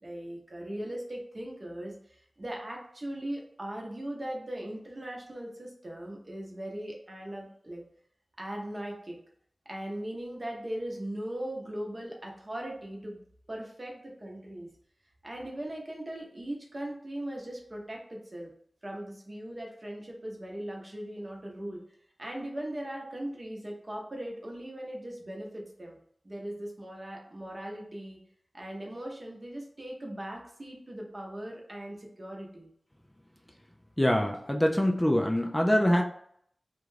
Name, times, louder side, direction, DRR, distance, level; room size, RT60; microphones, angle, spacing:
voice 1, 0.0-7.8 8.4-9.2 9.7-13.2 13.5-14.7 15.2-18.5 18.8-21.8 22.2-26.0 26.2-28.2 28.5-32.7, right 1 dB, 45° right, -1 dB, 0.8 m, -39 dB
voice 2, 34.0-36.0, equal, 15° left, 1 dB, 0.3 m, -24 dB
2.4 x 2.2 x 3.2 m, 0.66 s
wide cardioid pair, 45°, 0 cm